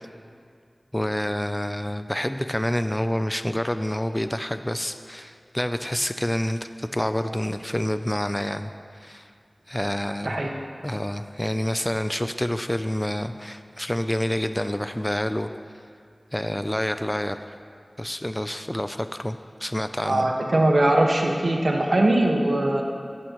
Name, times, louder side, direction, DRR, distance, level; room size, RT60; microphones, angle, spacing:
voice 1, 0.9-8.7 9.0-9.3 9.7-10.5 10.8-15.5 16.3-17.4 18.0-20.3, left 1 dB, 15° left, 9 dB, 0.4 m, -28 dB
voice 2, 20.0-22.8, right 1 dB, 85° right, 0 dB, 1.5 m, -21 dB
17.5 x 14.0 x 3.1 m, 2.2 s
wide cardioid pair, 50°, 0 cm